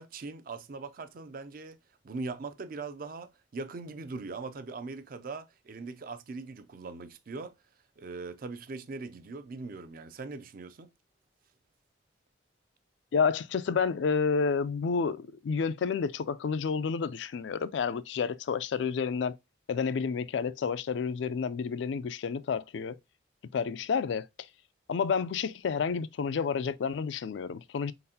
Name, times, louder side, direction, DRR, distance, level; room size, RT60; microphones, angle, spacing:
voice 1, 0.0-1.8 2.0-7.6 8.0-10.9, right 3 dB, 50° right, 0.4 m, -40 dB
voice 2, 13.1-19.3 19.7-23.0 23.5-24.3 24.9-27.9, left 5 dB, 75° left, 0.3 m, -30 dB
4.2 x 3.9 x 2.7 m
head